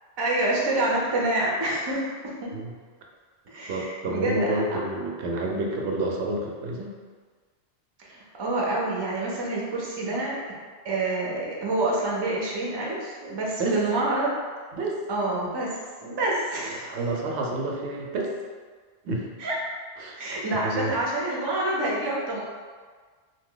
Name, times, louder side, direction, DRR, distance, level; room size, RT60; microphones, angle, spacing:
voice 1, 0.2-2.5 3.5-4.8 8.0-10.4 10.8-14.3 15.1-15.7 16.0-16.9 19.4-19.6 20.1-22.4, right 2 dB, 35° right, -4 dB, 0.4 m, -27 dB
voice 2, 3.7-6.9 13.6-13.8 14.7-15.0 16.6-18.3 19.0-19.3 20.0-20.2 20.5-20.9, right 2 dB, 85° right, 0 dB, 0.9 m, -29 dB
2.7 x 2.1 x 3.7 m, 1.5 s
omnidirectional pair, 1.1 m